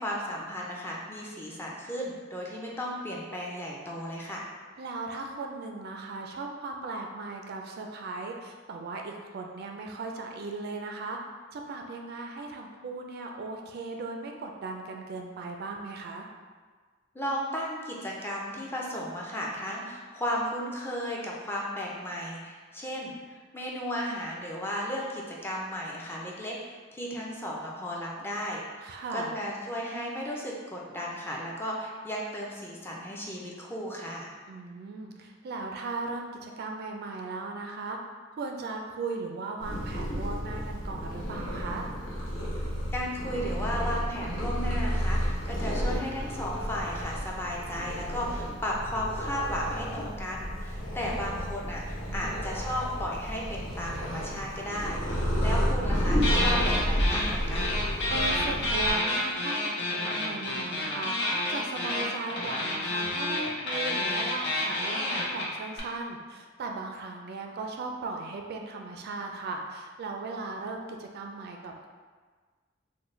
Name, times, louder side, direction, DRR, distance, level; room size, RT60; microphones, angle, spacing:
voice 1, 0.0-4.5 17.1-34.3 42.6-42.7 42.9-57.8, equal, 10° left, -3 dB, 0.4 m, -35 dB
voice 2, 4.8-11.2 11.5-16.3 28.8-29.3 34.5-38.0 38.4-41.9 52.1-52.5 56.2-56.5 58.1-59.7 60.0-61.1 61.5-71.9, right 3 dB, 55° right, 2 dB, 0.3 m, -37 dB
Purr, 39.6-58.9, equal, 85° left, 0.9 m, -31 dB
sound 1, 56.2-57.3 57.5-65.8, left 1 dB, 60° left, 0.7 m, -29 dB
3.8 x 2.1 x 3.1 m, 1.5 s
head